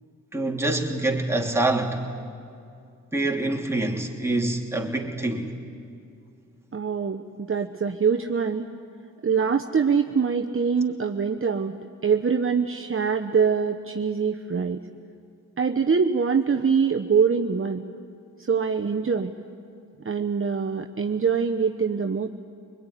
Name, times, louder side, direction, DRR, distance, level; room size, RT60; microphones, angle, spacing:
voice 1, 0.3-2.0 3.1-5.5, right 2 dB, 5° right, 0 dB, 3.0 m, -25 dB
voice 2, 6.7-8.7 9.2-11.8 12.0-14.8 15.6-17.8 18.4-19.3 20.0-22.3, right 6 dB, 35° right, 5 dB, 1.0 m, -24 dB
23.5 x 21.0 x 10.0 m, 2.4 s
cardioid pair, 55°, 36 cm